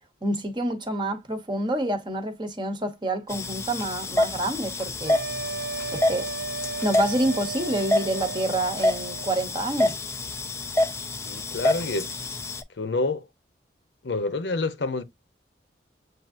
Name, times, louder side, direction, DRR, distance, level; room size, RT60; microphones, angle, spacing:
voice 1, 0.2-5.2 5.9-6.3 6.8-10.0, right 1 dB, 25° right, 0.8 m, -28 dB
sound 1, 3.3-12.6, left 1 dB, 15° left, 0.4 m, -28 dB
sound 2, 5.0-9.4, right 4 dB, 75° right, 0.5 m, -35 dB
voice 2, 11.3-12.2 12.8-13.2 14.0-15.0, left 3 dB, 80° left, 0.8 m, -28 dB
7.6 x 2.6 x 2.5 m
head